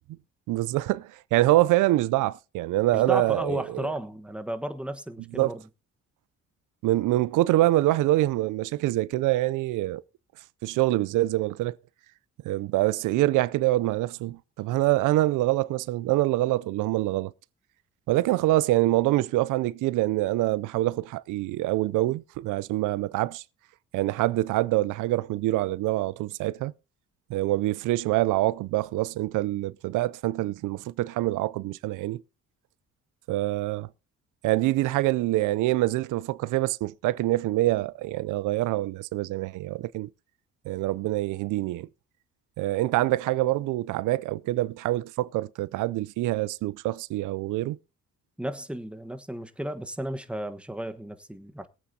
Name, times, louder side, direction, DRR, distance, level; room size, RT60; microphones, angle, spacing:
voice 1, 0.5-3.9 5.4-5.6 6.8-10.0 10.6-11.8 12.4-17.3 18.1-23.4 23.9-26.7 27.3-32.2 33.3-33.9 34.4-40.1 40.7-41.9 42.6-47.8, right 17 dB, 85° right, 0.5 m, -25 dB
voice 2, 2.9-5.6 48.4-51.7, right 1 dB, 5° right, 1.2 m, -33 dB
22.5 x 8.5 x 2.7 m
cardioid pair, 90°, 30 cm